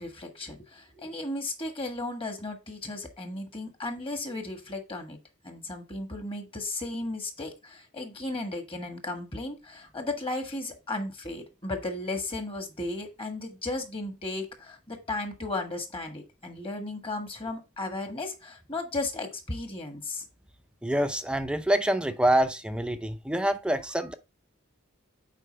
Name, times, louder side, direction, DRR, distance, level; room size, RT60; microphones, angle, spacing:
voice 1, 0.0-5.2 5.4-20.2, left 2 dB, 25° left, 1.4 m, -35 dB
voice 2, 20.8-24.1, right 1 dB, 5° right, 0.6 m, -26 dB
8.3 x 4.7 x 3.3 m
head